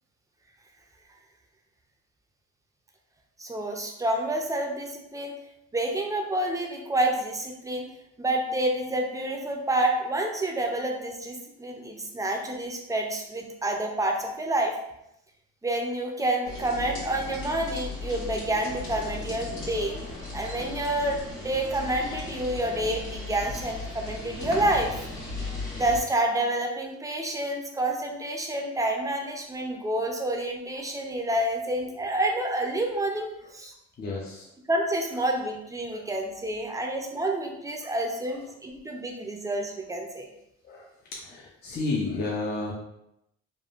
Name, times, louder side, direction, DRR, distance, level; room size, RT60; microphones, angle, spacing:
voice 1, 3.4-5.3 5.7-7.9 8.2-14.7 15.6-20.0 20.3-24.9 25.7-33.3 33.5-33.7 34.7-40.3, right 1 dB, 10° right, 2 dB, 0.5 m, -28 dB
sound 1, 16.4-26.0, left 3 dB, 80° left, 1.5 m, -36 dB
voice 2, 34.0-34.5 35.9-36.1 36.7-36.8 37.8-37.9 38.3-38.4 40.6-40.9 41.2-42.7, left 3 dB, 35° left, -3 dB, 0.5 m, -32 dB
3.5 x 2.1 x 2.4 m, 0.82 s
cardioid pair, 90°, 30 cm